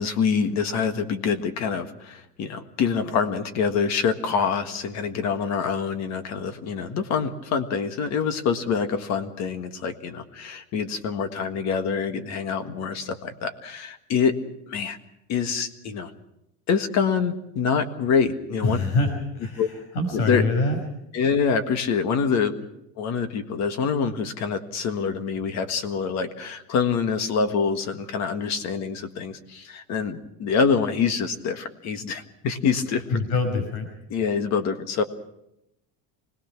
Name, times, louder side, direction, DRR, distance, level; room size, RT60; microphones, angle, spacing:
voice 1, 0.0-14.4 14.7-15.0 15.3-16.1 16.7-18.8 19.6-19.7 20.1-20.5 21.1-22.6 23.0-33.0 34.1-35.0, left 6 dB, 40° left, 8 dB, 1.7 m, -25 dB
voice 2, 18.6-20.8 33.1-33.9, left 2 dB, 85° left, 5 dB, 5.4 m, -25 dB
25.0 x 20.0 x 6.0 m, 0.82 s
cardioid pair, 170°, 40 cm